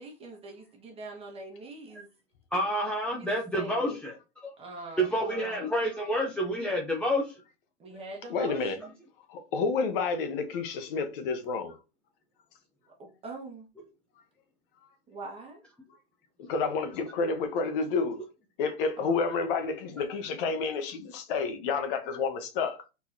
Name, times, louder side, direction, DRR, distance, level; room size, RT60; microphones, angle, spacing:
voice 1, 0.0-2.1 3.1-3.3 3.5-4.0 4.6-5.7 7.8-8.9 13.0-13.7 15.1-15.6 19.0-19.2, right 2 dB, 15° right, 1.4 m, -43 dB
voice 2, 2.5-4.2 5.0-7.4 8.5-8.6, equal, 5° left, 0.5 m, -28 dB
voice 3, 8.3-8.8 9.3-11.8 16.4-18.2 18.6-22.8, left 4 dB, 50° left, 1.1 m, -30 dB
4.3 x 4.2 x 2.7 m
hypercardioid pair, 135°, 36 cm